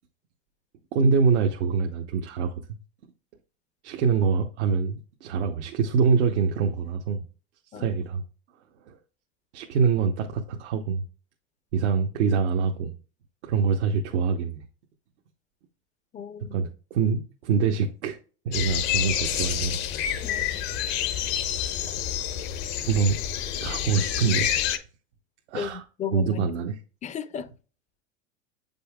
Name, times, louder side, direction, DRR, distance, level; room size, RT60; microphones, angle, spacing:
voice 1, 0.9-2.8 3.8-7.2 7.7-8.2 8.9-9.0 9.5-11.0 11.7-12.9 13.4-14.6 16.5-18.2 18.4-19.8 20.2-20.3 22.9-23.2 23.6-24.5 25.5-25.8 26.1-26.8, right 5 dB, 75° right, 0.9 m, -25 dB
voice 2, 16.1-16.6 20.2-20.7 25.5-25.7 26.0-26.4 27.0-27.5, left 7 dB, 20° left, 0.5 m, -34 dB
sound 1, 18.5-24.8, left 10 dB, 65° left, 0.9 m, -28 dB
7.7 x 5.4 x 2.3 m
hypercardioid pair, 105°, 34 cm